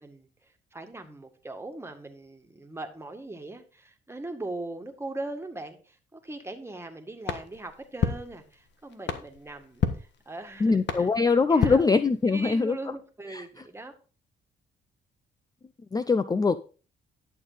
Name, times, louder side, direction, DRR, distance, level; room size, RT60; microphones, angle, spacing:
voice 1, 0.0-11.8 12.3-13.9, right 2 dB, 15° right, 5 dB, 1.9 m, -40 dB
sound 1, 7.2-12.6, left 7 dB, 65° left, 1.4 m, -33 dB
voice 2, 10.6-12.8 13.3-13.4 15.9-16.6, left 4 dB, 20° left, 13 dB, 0.5 m, -23 dB
11.0 x 7.2 x 4.1 m, 0.36 s
cardioid pair, 90°, 20 cm